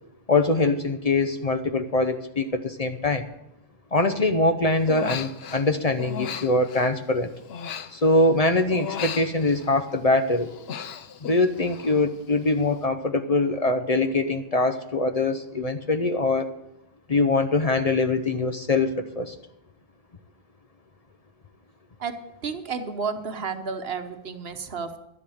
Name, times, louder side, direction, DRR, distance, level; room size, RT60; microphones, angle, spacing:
voice 1, 0.3-3.3 3.9-7.3 7.9-10.5 11.2-16.5 17.1-19.3, left 2 dB, 40° left, 8 dB, 0.8 m, -23 dB
Human voice, 4.8-5.7 6.0-8.4 8.7-10.0 10.3-12.1 12.4-12.8, left 8 dB, 75° left, 1.0 m, -36 dB
voice 2, 22.4-25.0, right 5 dB, 70° right, 8 dB, 1.3 m, -31 dB
12.0 x 10.5 x 6.4 m, 0.86 s
omnidirectional pair, 1.1 m